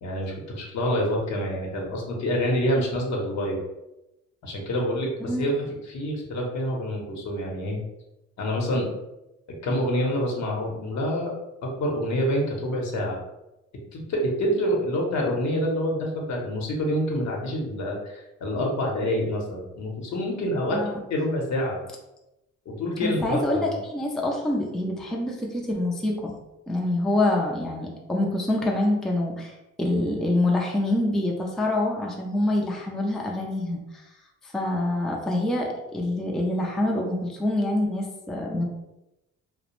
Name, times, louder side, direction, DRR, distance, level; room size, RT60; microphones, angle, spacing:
voice 1, 0.0-3.6 4.4-5.5 5.9-7.8 8.4-8.9 9.6-11.3 11.6-13.2 13.9-20.8 21.1-21.8 22.7-23.7, equal, 65° left, -1 dB, 0.8 m, -27 dB
voice 2, 23.0-26.3 26.7-34.0 34.4-38.6, left 1 dB, ahead, -1 dB, 0.4 m, -26 dB
2.4 x 2.0 x 2.9 m, 0.94 s
cardioid pair, 90°, 30 cm